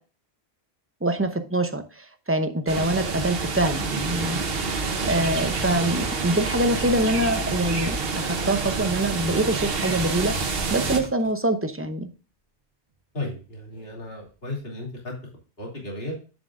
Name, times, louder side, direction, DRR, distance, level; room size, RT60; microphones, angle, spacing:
voice 1, 1.0-4.4 5.0-12.1, right 1 dB, 15° right, 7 dB, 0.6 m, -25 dB
sound 1, 2.7-11.0, right 4 dB, 60° right, 1.2 m, -27 dB
sound 2, 9.5-11.5 12.0-12.6 12.9-14.6, right 5 dB, 45° right, 1.2 m, -46 dB
voice 2, 13.1-15.1 15.6-16.1, left 2 dB, 60° left, -1 dB, 3.0 m, -34 dB
9.0 x 7.4 x 2.5 m, 0.35 s
omnidirectional pair, 1.1 m